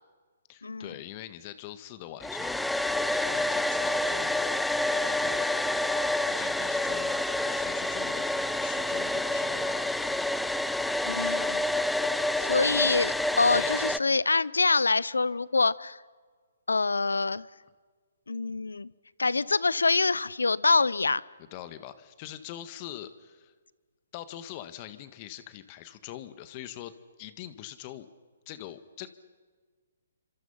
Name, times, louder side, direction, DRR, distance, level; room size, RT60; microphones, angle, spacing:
voice 1, 0.5-2.7 3.1-4.5 4.9-5.5 6.3-10.3 13.5-14.0 21.5-23.5 24.1-26.9 27.2-28.1 28.5-29.1, left 12 dB, 35° left, 12 dB, 1.7 m, -43 dB
Domestic sounds home sounds, 2.2-14.0, left 1 dB, 5° left, 0.6 m, -28 dB
voice 2, 11.1-11.7 12.4-16.0 16.7-17.5 18.3-18.9 19.2-21.2, left 3 dB, 85° left, 21 dB, 0.8 m, -25 dB
29.5 x 26.0 x 5.7 m, 1.5 s
hypercardioid pair, 135°, 0 cm